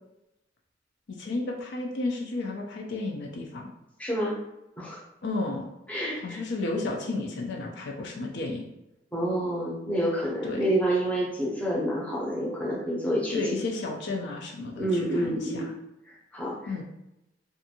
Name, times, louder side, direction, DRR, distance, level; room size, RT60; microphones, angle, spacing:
voice 1, 1.2-3.7 5.2-5.7 6.2-8.6 10.4-10.7 13.3-15.7 16.7-16.8, left 2 dB, 60° left, 0 dB, 0.4 m, -32 dB
voice 2, 4.0-4.4 4.8-5.0 5.9-6.4 9.1-13.6 14.8-15.7 16.1-16.8, right 1 dB, 5° left, -5 dB, 0.6 m, -28 dB
2.6 x 2.4 x 2.7 m, 0.90 s
head